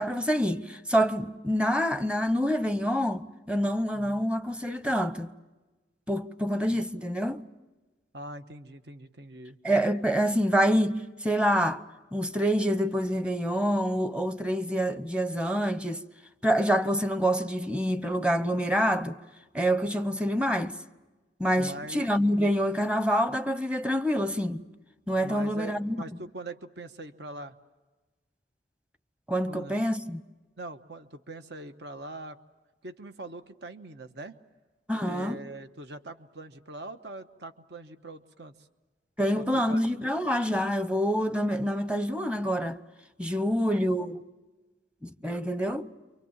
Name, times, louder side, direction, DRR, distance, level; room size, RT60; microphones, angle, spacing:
voice 1, 0.0-5.3 6.1-7.4 9.6-11.8 12.1-16.0 16.4-19.2 19.5-20.8 21.4-24.6 25.1-26.0 29.3-30.2 34.9-35.4 39.2-42.8 43.2-44.2 45.0-45.9, equal, 5° right, 0.8 m, -26 dB
voice 2, 3.9-4.2 6.5-6.8 8.1-9.6 21.6-22.1 25.2-27.5 29.5-29.9 30.6-32.4 32.8-34.4 35.0-38.7 39.3-39.8, right 2 dB, 70° right, 1.2 m, -42 dB
28.5 x 24.5 x 7.3 m
head